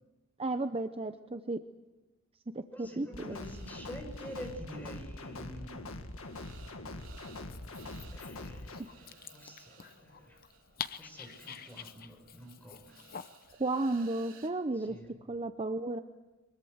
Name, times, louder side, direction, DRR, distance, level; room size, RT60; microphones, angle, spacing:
voice 1, 0.4-1.6 2.5-3.1 13.6-15.0 15.3-16.0, right 2 dB, 25° right, 8 dB, 0.7 m, -33 dB
voice 2, 2.7-5.9 8.1-10.4 11.0-13.0 14.7-15.2, equal, 10° left, 4 dB, 5.5 m, -47 dB
sound 1, 3.1-8.8, left 2 dB, 75° left, 1.8 m, -43 dB
sound 2, 3.3-14.5, right 5 dB, 65° right, 3.3 m, -59 dB
Dog, 7.3-13.6, left 8 dB, 45° left, 0.8 m, -47 dB
23.5 x 21.5 x 8.0 m, 1.1 s
head